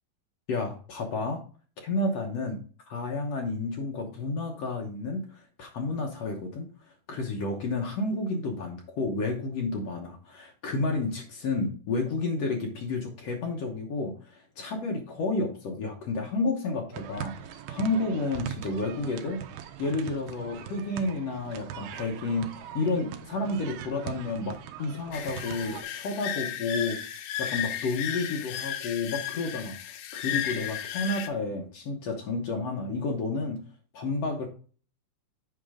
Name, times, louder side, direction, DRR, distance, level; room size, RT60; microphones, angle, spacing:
voice 1, 0.5-1.4 1.8-2.6 2.9-6.7 7.1-19.4 19.8-27.0 27.4-29.8 30.1-33.6 33.9-34.5, left 3 dB, 65° left, 1 dB, 1.6 m, -31 dB
sound 1, 16.9-25.8, right 10 dB, 85° right, 2.6 m, -41 dB
sound 2, 25.1-31.3, left 11 dB, 85° left, 2.6 m, -34 dB
8.2 x 5.1 x 3.6 m, 0.40 s
omnidirectional pair, 4.3 m